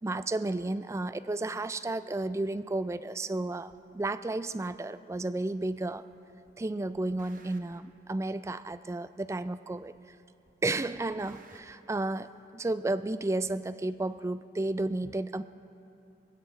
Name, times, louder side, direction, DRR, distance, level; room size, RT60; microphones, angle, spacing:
voice 1, 0.0-6.1 6.6-9.9 10.6-15.4, right 2 dB, 15° right, 14 dB, 0.3 m, -32 dB
sound 1, 3.7-3.8 4.7-4.8 5.7-6.2 6.4-7.9 8.7-8.8 9.7-10.2 10.4-11.7, right 3 dB, 45° right, 1.0 m, -59 dB
25.0 x 16.0 x 3.3 m, 2.8 s
head